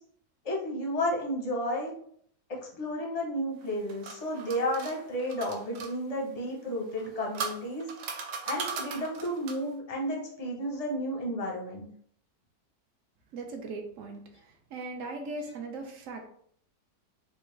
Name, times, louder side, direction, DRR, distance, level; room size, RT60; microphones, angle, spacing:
voice 1, 0.4-1.9 2.5-7.9 8.5-11.9, equal, 40° left, -1 dB, 0.5 m, -32 dB
sound 1, 3.6-5.9 6.9-9.7, right 5 dB, 80° right, 1.2 m, -38 dB
voice 2, 13.3-16.3, right 3 dB, 65° right, 3 dB, 0.8 m, -39 dB
4.2 x 2.3 x 3.1 m, 0.63 s
omnidirectional pair, 1.8 m